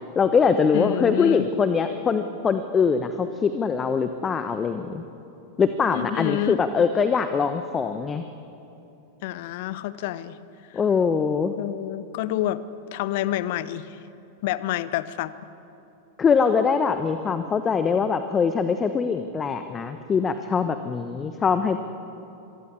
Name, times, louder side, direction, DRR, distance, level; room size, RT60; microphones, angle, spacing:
voice 1, 0.1-5.0 5.6-8.2 10.7-11.5 16.2-21.8, left 5 dB, 20° left, 9 dB, 1.1 m, -23 dB
voice 2, 0.7-1.5 5.9-6.6 9.2-10.4 10.7-10.8 11.6-12.6 12.9-14.0 14.4-15.3, left 14 dB, 50° left, 16 dB, 1.0 m, -28 dB
26.5 x 22.5 x 8.6 m, 2.9 s
figure-of-eight pair, 90°, 0 cm